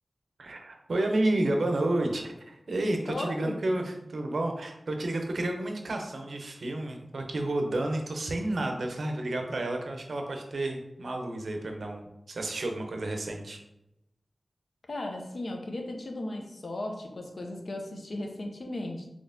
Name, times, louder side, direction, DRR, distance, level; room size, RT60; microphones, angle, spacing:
voice 1, 0.4-13.6, right 1 dB, 80° right, 3 dB, 0.5 m, -31 dB
voice 2, 3.1-3.6 14.9-19.1, left 1 dB, 65° left, 2 dB, 0.6 m, -36 dB
4.0 x 3.0 x 2.6 m, 0.87 s
wide cardioid pair, 55°, 0 cm